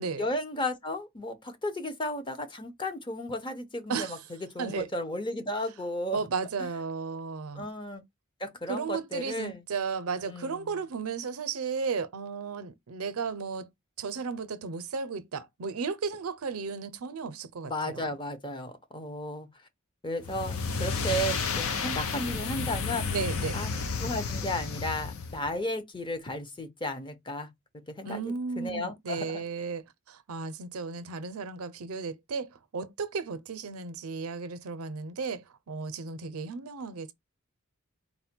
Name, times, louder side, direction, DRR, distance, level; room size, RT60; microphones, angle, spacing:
voice 1, 0.2-4.2 4.5-6.3 6.6-6.7 7.5-8.0 8.4-9.6 10.2-10.8 17.6-19.5 20.0-23.1 23.5-23.7 24.0-27.5 27.9-29.4, left 1 dB, 20° left, 0.7 m, -34 dB
voice 2, 3.9-4.2 4.6-4.9 6.1-7.7 8.7-13.7 14.0-18.1 23.1-23.6 28.0-37.1, right 5 dB, 85° right, 0.6 m, -34 dB
sound 1, 20.2-25.5, left 4 dB, 75° left, 0.6 m, -32 dB
4.0 x 2.1 x 4.3 m
head